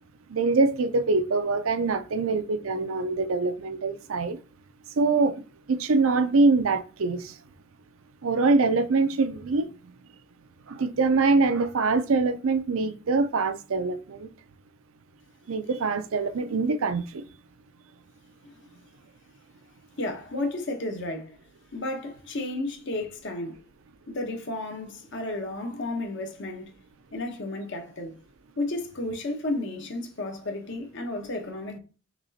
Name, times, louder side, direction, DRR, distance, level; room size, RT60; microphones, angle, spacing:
voice 1, 0.3-4.4 5.0-5.3 5.7-7.3 8.2-9.7 10.7-14.3 15.5-17.2, right 3 dB, 75° right, 0.5 m, -24 dB
voice 2, 20.0-21.4 21.7-23.6 24.1-26.7 27.1-28.1 28.6-31.8, left 2 dB, 55° left, 0.9 m, -32 dB
6.0 x 3.0 x 2.8 m
head